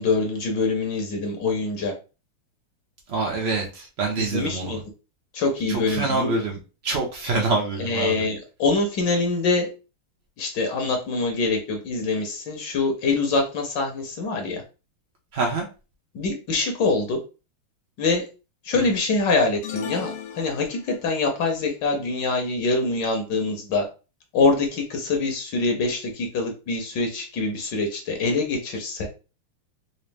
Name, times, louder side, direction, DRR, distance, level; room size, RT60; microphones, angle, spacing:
voice 1, 0.0-1.9 4.2-4.8 5.3-6.3 7.8-9.7 10.4-14.6 16.1-17.2 18.0-18.2 18.6-20.1 20.3-23.8 24.3-29.1, left 3 dB, 65° left, 3 dB, 1.4 m, -24 dB
voice 2, 3.1-4.8 5.7-8.3 15.3-15.7 18.7-18.9, right 3 dB, 70° right, 0 dB, 0.6 m, -26 dB
sound 1, 19.6-21.2, left 9 dB, 85° left, 1.5 m, -35 dB
4.1 x 2.6 x 3.3 m, 0.32 s
omnidirectional pair, 2.2 m